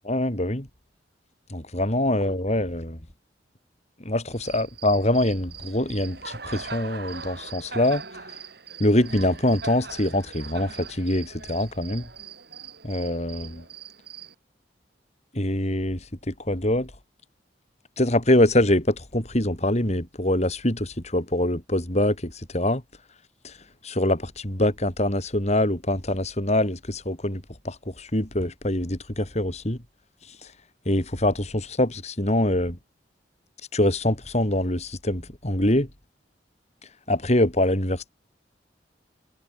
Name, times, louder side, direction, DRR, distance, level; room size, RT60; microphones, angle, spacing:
voice 1, 0.0-0.7 1.5-3.0 4.0-8.0 8.8-12.1 12.8-13.6 15.3-16.9 18.0-22.8 23.4-23.6 23.8-29.8 30.3-30.5 30.9-32.8 33.7-35.9 37.1-38.1, left 1 dB, 40° left, 3.8 m, -24 dB
Cricket, 4.3-14.3, right 5 dB, 60° right, 7.8 m, -41 dB
head